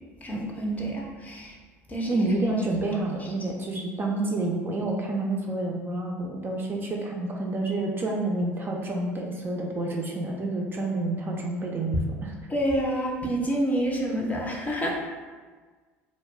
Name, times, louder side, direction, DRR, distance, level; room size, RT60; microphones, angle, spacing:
voice 1, 0.2-1.6 1.9-2.2 12.5-15.1, right 1 dB, 20° left, -1 dB, 0.6 m, -28 dB
voice 2, 2.1-12.3, right 2 dB, 30° right, -1 dB, 0.4 m, -29 dB
2.3 x 2.1 x 3.2 m, 1.4 s
hypercardioid pair, 70°, 7 cm